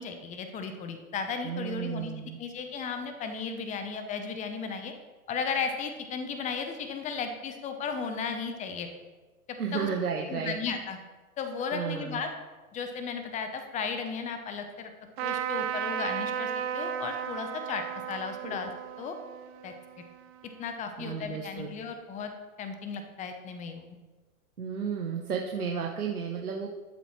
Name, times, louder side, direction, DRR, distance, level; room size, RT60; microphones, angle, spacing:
voice 1, 0.0-2.1 2.4-4.9 5.3-8.9 9.5-9.9 10.3-11.0 11.4-12.3 12.7-14.9 15.2-18.7 19.0-19.1 19.6-19.7 20.6-22.3 22.6-23.9, left 5 dB, 15° left, 7 dB, 0.8 m, -35 dB
voice 2, 1.4-2.4 9.6-10.6 11.7-12.2 18.4-18.6 21.0-21.7 24.6-26.7, right 6 dB, 90° right, 1 dB, 1.1 m, -33 dB
Trumpet, 15.2-20.7, right 9 dB, 45° right, 0.9 m, -35 dB
12.5 x 6.8 x 3.2 m, 1.3 s
hypercardioid pair, 115°, 44 cm